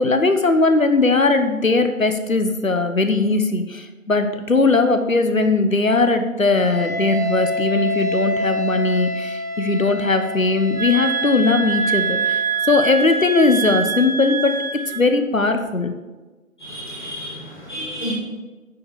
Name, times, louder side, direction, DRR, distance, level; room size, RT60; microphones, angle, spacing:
voice 1, 0.0-14.6 14.8-15.9, left 3 dB, 65° left, 7 dB, 1.2 m, -19 dB
Wind instrument woodwind instrument, 6.5-12.6, left 1 dB, 85° left, 2.0 m, -27 dB
sound 1, 10.8-15.1, right 5 dB, 85° right, 2.0 m, -24 dB
voice 2, 16.6-18.1, equal, 35° left, -6 dB, 2.2 m, -31 dB
9.4 x 4.9 x 7.2 m, 1.2 s
figure-of-eight pair, 170°, 42 cm